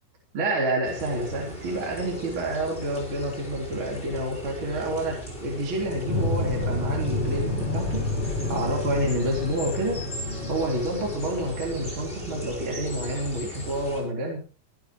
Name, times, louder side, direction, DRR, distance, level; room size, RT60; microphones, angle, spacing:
voice 1, 0.3-8.1 8.5-10.0 10.5-14.4, right 1 dB, 35° right, -1 dB, 4.4 m, -28 dB
sound 1, 0.8-14.0, equal, 15° left, 7.4 m, -37 dB
sound 2, 6.1-12.8, left 2 dB, 40° left, 4.3 m, -30 dB
26.0 x 11.0 x 3.1 m, 0.38 s
omnidirectional pair, 4.2 m